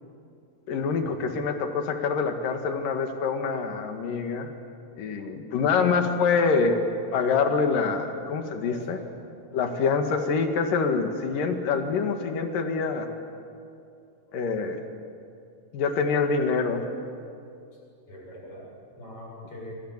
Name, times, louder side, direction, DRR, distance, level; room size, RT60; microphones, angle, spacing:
voice 1, 0.7-4.5 5.0-6.8 7.1-9.0 9.5-13.1 14.3-14.9 15.7-16.9, left 5 dB, 80° left, 5 dB, 3.6 m, -25 dB
voice 2, 8.6-9.1 18.1-19.7, left 1 dB, 40° left, -2 dB, 8.5 m, -42 dB
26.0 x 26.0 x 7.4 m, 2.5 s
omnidirectional pair, 3.8 m